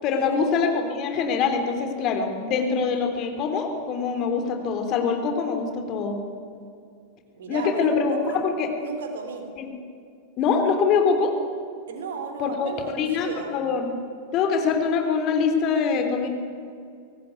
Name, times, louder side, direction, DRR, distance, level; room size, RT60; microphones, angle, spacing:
voice 1, 0.0-6.2 7.5-8.7 9.6-9.7 10.4-11.4 12.4-12.7 13.0-13.9 14.3-16.3, left 5 dB, 35° left, 5 dB, 3.4 m, -24 dB
voice 2, 7.4-8.4 8.8-9.5 11.9-13.6, right 5 dB, 60° right, 6 dB, 3.5 m, -35 dB
23.0 x 18.5 x 9.3 m, 2.4 s
figure-of-eight pair, 90°, 0 cm